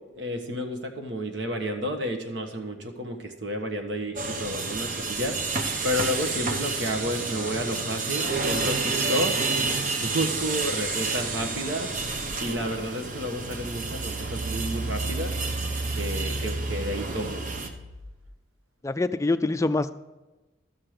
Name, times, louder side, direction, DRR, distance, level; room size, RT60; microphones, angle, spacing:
voice 1, 0.1-5.4 5.8-9.4 10.0-11.9 12.4-15.3 15.9-17.4, equal, 60° right, 5 dB, 1.3 m, -31 dB
sound 1, 4.2-17.7, right 4 dB, 40° right, 0.9 m, -30 dB
Engine, 12.4-18.3, right 2 dB, 90° right, 1.2 m, -34 dB
voice 2, 18.8-19.9, left 2 dB, 15° left, 10 dB, 0.3 m, -25 dB
12.5 x 7.7 x 5.0 m, 1.1 s
head